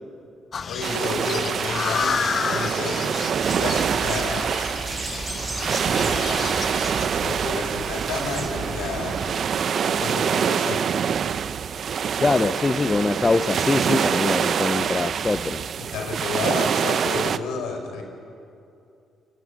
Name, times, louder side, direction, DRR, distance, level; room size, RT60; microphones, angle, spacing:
sound 1, 0.5-7.1, left 6 dB, 45° left, 1.0 m, -30 dB
voice 1, 0.7-3.1 3.5-4.5 5.9-10.9 15.8-18.0, left 4 dB, 90° left, 5 dB, 4.4 m, -31 dB
sound 2, 0.8-17.4, right 7 dB, 55° right, 0.8 m, -25 dB
sound 3, 3.3-9.3, right 3 dB, 30° right, 2.6 m, -35 dB
voice 2, 12.2-15.6, left 3 dB, 25° left, 12 dB, 0.7 m, -23 dB
28.0 x 22.5 x 8.5 m, 2.6 s
cardioid pair, 90°, 0 cm